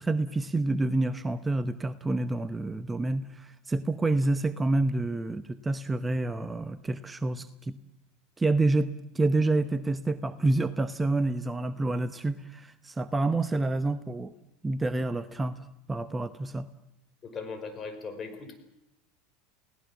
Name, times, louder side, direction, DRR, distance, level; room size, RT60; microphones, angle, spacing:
voice 1, 0.0-7.8 8.4-14.3 14.6-16.7, right 2 dB, 15° right, 12 dB, 0.9 m, -28 dB
voice 2, 17.2-18.6, left 4 dB, 30° left, 7 dB, 5.3 m, -38 dB
29.5 x 18.0 x 7.3 m, 0.85 s
hypercardioid pair, 90°, 0 cm